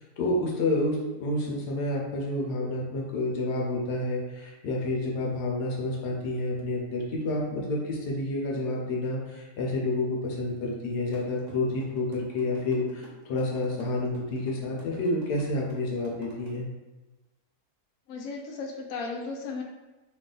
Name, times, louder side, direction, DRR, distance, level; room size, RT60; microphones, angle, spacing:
voice 1, 0.2-16.7, left 2 dB, 90° left, -2 dB, 1.3 m, -29 dB
sound 1, 11.1-16.5, right 3 dB, 75° right, 1.3 m, -48 dB
voice 2, 18.1-19.6, left 4 dB, 70° left, 1 dB, 0.9 m, -35 dB
3.2 x 2.3 x 3.7 m, 1.1 s
omnidirectional pair, 1.7 m